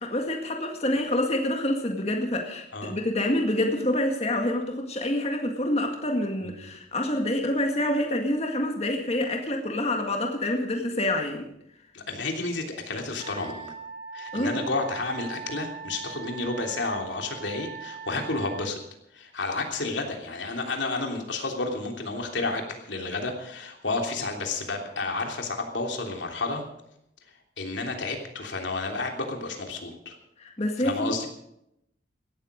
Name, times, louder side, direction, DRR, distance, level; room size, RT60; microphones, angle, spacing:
voice 1, 0.0-11.5 14.3-14.6 30.4-31.3, left 1 dB, 35° left, 3 dB, 1.9 m, -27 dB
voice 2, 11.9-13.7 14.1-18.8 19.1-26.6 27.6-30.2 30.8-31.3, left 3 dB, 90° left, 2 dB, 3.2 m, -31 dB
Wind instrument woodwind instrument, 13.1-18.7, right 5 dB, 55° right, 4.4 m, -40 dB
17.0 x 13.5 x 5.2 m, 0.79 s
head